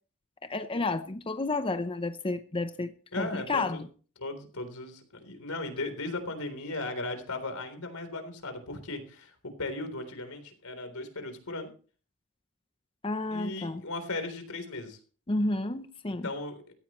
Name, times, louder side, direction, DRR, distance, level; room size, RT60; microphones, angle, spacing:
voice 1, 0.4-3.9 13.0-13.8 15.3-16.3, left 2 dB, 25° left, 0.7 m, -31 dB
voice 2, 3.1-3.8 4.2-11.7 13.3-15.0 16.2-16.7, left 2 dB, 90° left, 3.7 m, -37 dB
16.5 x 14.5 x 3.1 m
head